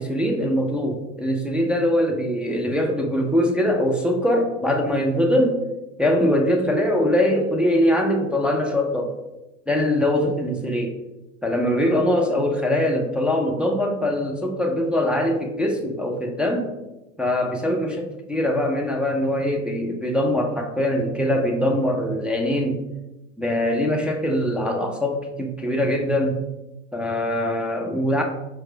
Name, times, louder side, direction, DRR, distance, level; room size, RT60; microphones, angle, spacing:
voice 1, 0.0-5.6 6.0-9.1 9.7-11.0 11.4-16.8 17.2-22.8 23.4-26.4 26.9-28.2, left 1 dB, 5° right, 0 dB, 0.6 m, -22 dB
4.6 x 2.3 x 4.5 m, 1.0 s
hypercardioid pair, 75°, 35 cm